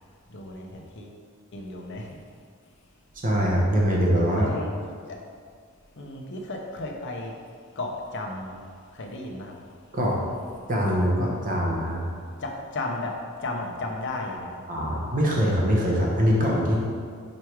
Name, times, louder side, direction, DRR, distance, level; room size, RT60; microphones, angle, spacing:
voice 1, 0.3-1.2 1.5-2.2 4.4-4.7 5.1-5.2 6.0-7.3 7.7-8.6 8.9-9.5 12.4-14.6 16.7-16.8, left 2 dB, 55° left, 1 dB, 0.8 m, -34 dB
voice 2, 3.1-4.5 9.9-10.2 10.7-12.0 14.7-16.8, equal, 40° right, -3 dB, 1.0 m, -23 dB
5.1 x 4.7 x 4.7 m, 2.1 s
head